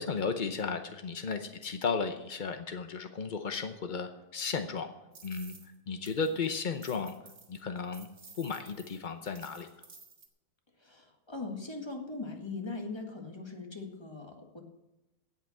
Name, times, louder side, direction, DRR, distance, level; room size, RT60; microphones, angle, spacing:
voice 1, 0.0-4.9 5.2-5.6 5.9-7.1 7.5-8.1 8.3-9.7, left 5 dB, 70° left, 7 dB, 0.4 m, -34 dB
sound 1, 5.1-5.7 6.0-10.3, right 4 dB, 40° right, 1.9 m, -54 dB
voice 2, 10.8-14.6, left 3 dB, 15° left, 2 dB, 1.7 m, -40 dB
17.0 x 5.8 x 7.2 m, 0.98 s
omnidirectional pair, 2.0 m